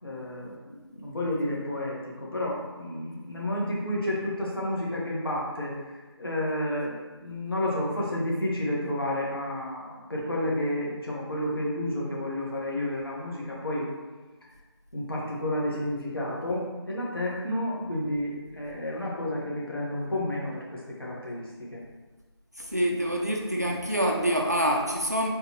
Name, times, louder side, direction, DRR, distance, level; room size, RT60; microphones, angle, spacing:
voice 1, 0.0-13.9 14.9-21.8, left 1 dB, 55° left, -4 dB, 1.3 m, -31 dB
voice 2, 22.6-25.3, equal, 40° right, 0 dB, 0.4 m, -26 dB
3.8 x 3.6 x 2.9 m, 1.2 s
figure-of-eight pair, 175°, 14 cm